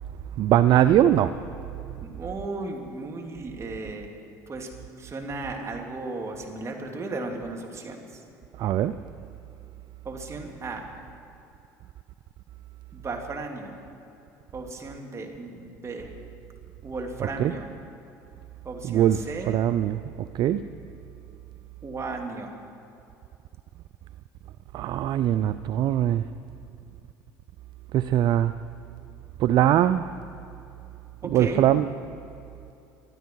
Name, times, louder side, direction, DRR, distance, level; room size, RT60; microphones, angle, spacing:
voice 1, 0.4-1.4 8.6-9.0 17.4-17.5 18.8-19.2 19.5-20.6 24.7-26.2 27.9-28.5 29.4-30.1 31.3-31.9, right 11 dB, 55° right, 12 dB, 0.5 m, -21 dB
voice 2, 2.0-4.1 4.5-4.7 5.0-8.2 10.0-10.9 12.9-13.7 14.5-16.1 16.8-17.7 18.6-19.7 21.8-22.6 31.2-31.6, right 3 dB, 30° right, 1 dB, 2.9 m, -35 dB
24.0 x 12.5 x 4.7 m, 2.8 s
hypercardioid pair, 65°, 9 cm